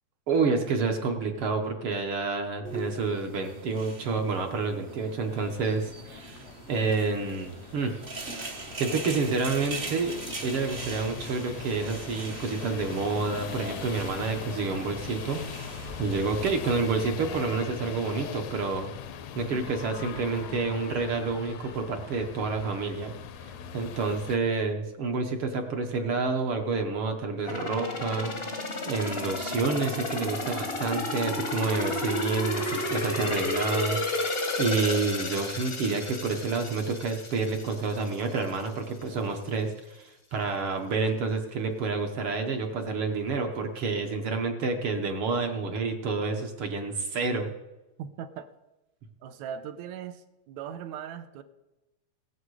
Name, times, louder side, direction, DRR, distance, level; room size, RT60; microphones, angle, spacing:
voice 1, 0.3-8.0 8.8-10.1 10.4-15.4 16.0-18.9 19.4-23.1 23.7-47.5, right 4 dB, 60° right, 4 dB, 1.7 m, -29 dB
sound 1, 2.6-16.7, right 2 dB, 40° right, 0.7 m, -41 dB
sound 2, 5.3-24.4, left 8 dB, 75° left, 1.9 m, -42 dB
sound 3, 27.5-38.2 38.6-38.7, left 2 dB, 40° left, 0.8 m, -32 dB
voice 2, 48.0-48.5 49.2-51.4, right 8 dB, 80° right, 10 dB, 2.1 m, -39 dB
20.0 x 7.3 x 4.8 m, 1.0 s
omnidirectional pair, 3.3 m